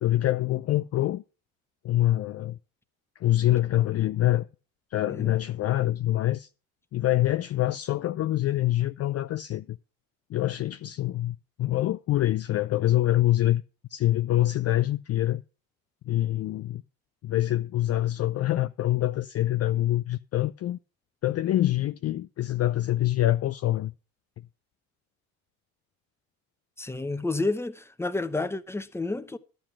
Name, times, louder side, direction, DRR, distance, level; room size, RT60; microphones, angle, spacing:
voice 1, 0.0-1.2 1.8-2.6 3.2-4.5 4.9-6.5 6.9-9.8 10.3-13.6 13.9-15.4 16.1-16.8 17.2-20.8 21.2-23.9, left 14 dB, 40° left, 0.4 m, -25 dB
voice 2, 26.8-29.4, left 3 dB, 5° left, 0.9 m, -30 dB
11.5 x 7.8 x 5.8 m
hypercardioid pair, 65°, 41 cm